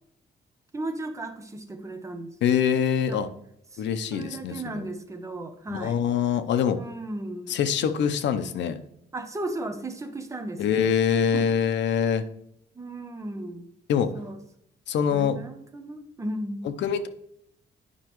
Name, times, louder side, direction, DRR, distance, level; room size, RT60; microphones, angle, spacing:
voice 1, 0.7-2.4 3.1-3.2 3.7-3.8 4.1-6.0 6.7-7.6 9.1-10.9 11.3-11.8 12.7-13.7 14.1-14.4 15.1-16.6, right 1 dB, 15° right, 7 dB, 0.7 m, -35 dB
voice 2, 2.4-3.3 3.8-4.9 5.7-6.8 7.5-8.8 10.6-12.2 13.9-14.1 14.9-15.4 16.6-17.1, left 7 dB, 80° left, 11 dB, 0.6 m, -24 dB
9.8 x 5.6 x 3.0 m, 0.73 s
cardioid pair, 165°, 18 cm